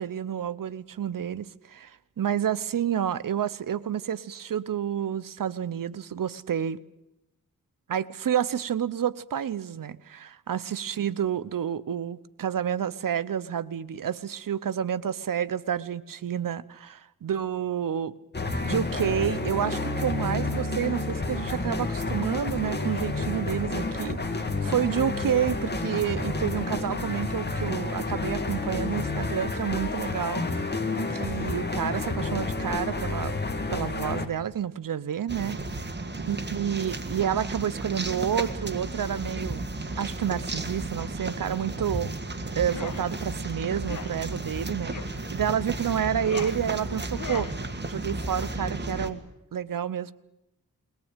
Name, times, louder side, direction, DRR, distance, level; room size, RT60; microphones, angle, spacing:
voice 1, 0.0-6.8 7.9-18.1 18.6-30.8 31.1-33.4 33.7-35.6 36.3-39.6 40.0-42.1 42.5-47.5 47.9-49.2 49.5-50.1, right 9 dB, 70° right, 14 dB, 0.9 m, -29 dB
sound 1, 18.3-34.3, left 2 dB, 30° left, 2.3 m, -30 dB
sound 2, 35.3-49.1, right 2 dB, 30° right, 1.9 m, -34 dB
sound 3, 42.6-43.0 43.8-44.1 44.9-45.2 46.0-46.6 47.1-47.6, left 6 dB, 60° left, 1.5 m, -38 dB
21.5 x 18.0 x 9.0 m, 0.94 s
wide cardioid pair, 80°, 34 cm